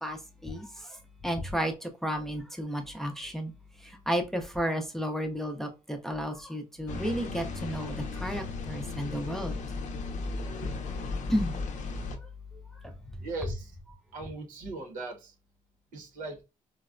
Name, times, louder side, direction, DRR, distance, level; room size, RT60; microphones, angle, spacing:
voice 1, 0.0-1.0 1.2-3.5 3.8-9.6 11.3-11.6 12.8-12.9, equal, 5° left, 0.4 m, -33 dB
sound 1, 6.9-12.2, left 3 dB, 65° left, 0.5 m, -35 dB
voice 2, 13.2-13.7 14.1-15.3 15.9-16.4, right 2 dB, 85° right, 0.9 m, -38 dB
3.9 x 2.1 x 2.4 m
cardioid pair, 130°, 13 cm